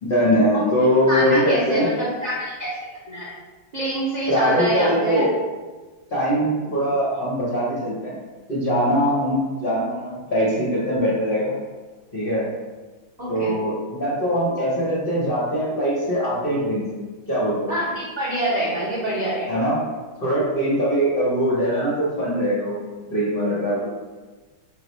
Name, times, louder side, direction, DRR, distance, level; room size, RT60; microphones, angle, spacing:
voice 1, 0.0-1.9 4.3-5.3 6.1-8.1 8.5-11.5 12.1-12.4 13.3-16.8 17.3-17.7 19.5-19.8 20.2-23.9, equal, 50° left, -8 dB, 0.7 m, -22 dB
voice 2, 1.1-2.7 3.1-3.3 3.7-5.3 9.0-9.1 13.2-13.5 17.7-19.6, right 1 dB, 45° right, -8 dB, 0.5 m, -26 dB
4.0 x 2.3 x 4.0 m, 1.3 s
omnidirectional pair, 2.0 m